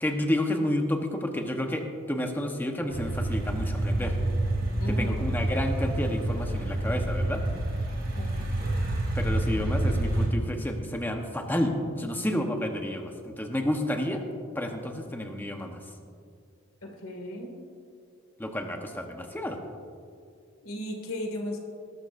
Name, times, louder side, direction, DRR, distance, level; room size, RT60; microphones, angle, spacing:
voice 1, 0.0-4.1 4.9-7.4 9.1-14.2 14.5-15.8 18.4-19.6, left 1 dB, 10° left, 3 dB, 1.0 m, -30 dB
sound 1, 2.9-10.3, right 1 dB, 45° right, 3.3 m, -28 dB
voice 2, 4.8-5.3 8.2-8.5 16.8-17.5 20.6-21.6, left 1 dB, 85° left, 1 dB, 2.2 m, -35 dB
19.5 x 12.5 x 2.6 m, 2.4 s
head